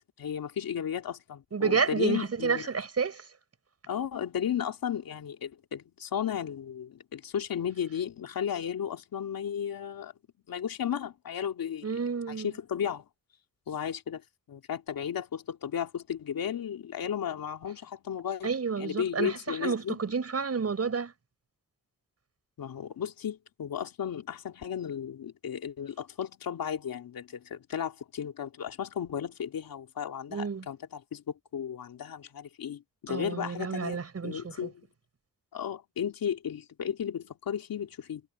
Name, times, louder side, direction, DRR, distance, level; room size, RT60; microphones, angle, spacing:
voice 1, 0.2-2.7 3.9-10.1 10.5-11.9 12.3-13.1 13.7-14.2 14.5-18.5 18.8-20.0 22.6-34.0 34.2-34.8 35.5-38.2, left 8 dB, 80° left, 2.8 m, -34 dB
voice 2, 1.5-3.2 11.8-12.5 18.4-21.1 30.3-30.7 33.1-34.7, right 5 dB, 45° right, 7.0 m, -30 dB
wide cardioid pair, 115°, 34 cm